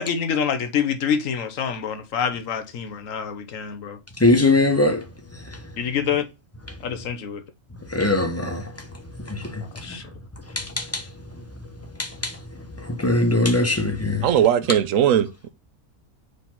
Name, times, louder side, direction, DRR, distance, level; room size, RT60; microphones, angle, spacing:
voice 1, 0.0-4.0 5.8-6.3 6.8-7.4 9.8-10.0, left 7 dB, 80° left, 1.3 m, -26 dB
voice 2, 4.2-5.0 5.3-5.6 7.9-8.9 9.2-10.0 10.5-11.4 11.9-14.3, left 2 dB, 15° left, 0.8 m, -23 dB
voice 3, 14.2-15.5, right 10 dB, 80° right, 1.0 m, -19 dB
5.0 x 4.2 x 5.8 m
omnidirectional pair, 1.4 m